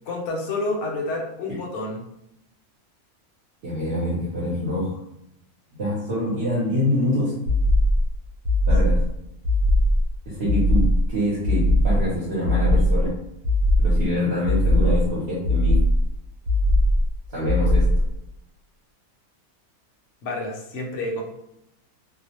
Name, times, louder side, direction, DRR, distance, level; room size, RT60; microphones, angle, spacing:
voice 1, 0.1-2.0 20.2-21.2, left 2 dB, 65° left, 0 dB, 0.8 m, -29 dB
voice 2, 3.6-5.0 5.8-7.4 8.7-9.0 10.3-13.1 13.8-15.8 17.3-17.9, left 1 dB, 55° right, -8 dB, 0.9 m, -25 dB
sound 1, 7.5-8.1 8.4-9.1 9.4-10.1 10.4-11.1 11.4-12.1 12.4-13.1 13.4-14.1 14.4-15.1 15.4-16.1 16.4-17.1 17.4-18.1, left 1 dB, 85° right, 1.1 m, -19 dB
2.5 x 2.0 x 2.8 m, 0.83 s
omnidirectional pair, 1.5 m